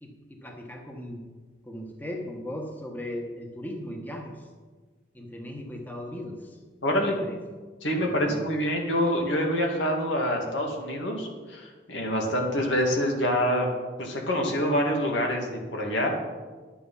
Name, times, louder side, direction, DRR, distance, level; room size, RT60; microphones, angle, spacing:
voice 1, 0.0-1.2 1.6-4.5 5.1-6.6 7.2-7.4 8.0-8.4, left 1 dB, 10° left, 1 dB, 1.2 m, -38 dB
voice 2, 6.8-7.2 7.8-13.7 14.0-16.1, equal, 85° left, 1 dB, 2.3 m, -26 dB
11.0 x 8.6 x 5.6 m, 1.4 s
head